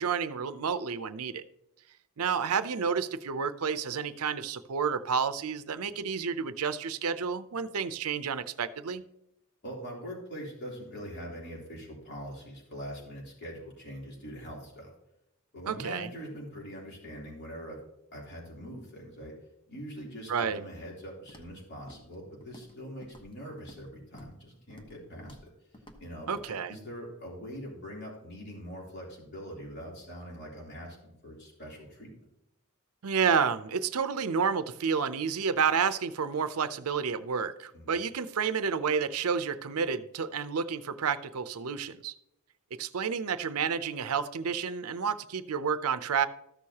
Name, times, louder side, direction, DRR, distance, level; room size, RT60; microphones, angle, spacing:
voice 1, 0.0-1.4 2.2-9.0 15.7-16.1 20.3-20.6 26.3-26.8 33.0-42.1 42.7-46.3, right 6 dB, 75° right, 12 dB, 0.6 m, -30 dB
voice 2, 9.6-14.9 15.5-17.8 18.1-19.3 19.7-25.5 26.0-32.1 37.7-37.9, equal, 50° left, -3 dB, 3.4 m, -43 dB
Walk footsteps, 21.3-21.6 21.9-22.2 22.4-22.8 23.0-23.9 24.1-24.4 24.7-25.0 25.2-25.5 25.7-26.0 26.3-26.5, equal, 25° left, 1.1 m, -52 dB
14.0 x 6.4 x 2.9 m, 0.82 s
head